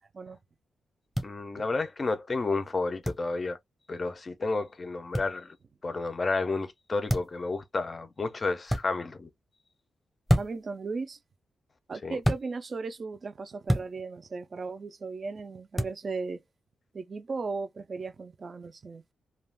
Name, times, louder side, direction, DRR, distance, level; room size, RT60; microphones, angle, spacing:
sound 1, 1.1-1.3 3.0-3.2 5.1-5.3 7.1-7.4 8.7-8.8 10.3-10.7 12.2-12.4 13.7-13.9 15.8-16.0, equal, ahead, 0.8 m, -27 dB
voice 1, 1.2-3.6 3.9-5.6 5.8-9.3 12.0-12.2, left 3 dB, 30° left, 0.5 m, -31 dB
voice 2, 10.4-11.2 11.9-16.4 16.9-19.0, right 4 dB, 35° right, 0.4 m, -36 dB
2.4 x 2.2 x 3.3 m
wide cardioid pair, 150°, 0 cm